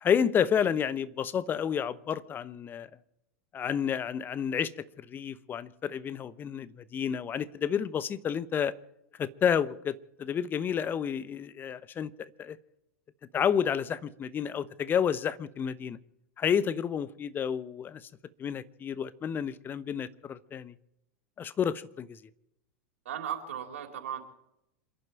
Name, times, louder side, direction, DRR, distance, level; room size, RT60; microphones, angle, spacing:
voice 1, 0.0-2.9 3.5-4.7 5.0-8.7 9.2-12.6 13.3-16.0 16.4-18.1 18.4-20.7 21.4-22.2, left 8 dB, 25° left, 16 dB, 1.0 m, -30 dB
voice 2, 23.1-24.2, right 9 dB, 70° right, 2 dB, 3.7 m, -36 dB
28.0 x 11.0 x 4.5 m, 0.83 s
figure-of-eight pair, 90°, 8 cm